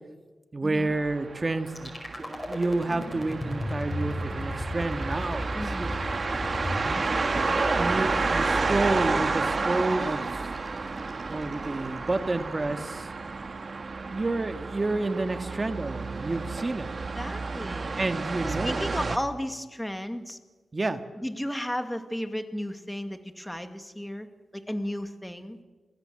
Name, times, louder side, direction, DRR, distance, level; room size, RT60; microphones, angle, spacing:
voice 1, 0.5-1.9 2.2-5.9 7.3-10.3 11.3-13.1 14.1-16.9 17.9-18.9 20.7-21.0, right 2 dB, 30° right, 7 dB, 1.8 m, -29 dB
sound 1, 0.8-19.2, right 4 dB, 50° right, 1.6 m, -31 dB
sound 2, 1.7-11.7, left 1 dB, 25° left, 5.1 m, -36 dB
voice 2, 5.5-5.9 17.2-18.0 18.4-20.4 21.2-24.3 24.5-25.6, equal, 5° left, 7 dB, 2.3 m, -34 dB
28.5 x 20.5 x 7.8 m, 1.2 s
cardioid pair, 75°, 0 cm